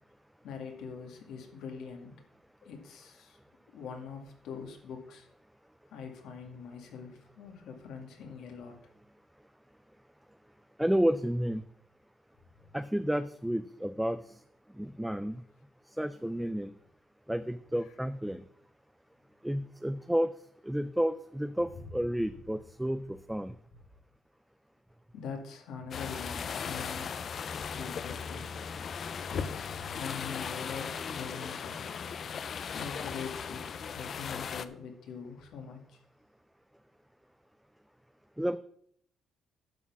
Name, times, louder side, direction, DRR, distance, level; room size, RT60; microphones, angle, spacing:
voice 1, 0.4-2.1 2.6-3.4 3.7-5.3 5.9-8.8 12.6-12.7 17.8-17.9 21.7-21.9 25.1-27.1 27.7-28.5 29.3-31.9 32.7-36.0, left 6 dB, 80° left, 3 dB, 2.1 m, -43 dB
voice 2, 10.8-11.6 12.7-14.2 14.8-15.4 16.0-16.7 17.3-18.4 19.4-20.3 20.6-23.5 38.4-38.6, equal, 5° right, 11 dB, 0.4 m, -31 dB
sound 1, 25.9-34.7, left 6 dB, 45° left, 0.5 m, -37 dB
11.0 x 4.3 x 7.1 m, 0.66 s
cardioid pair, 120°, 0 cm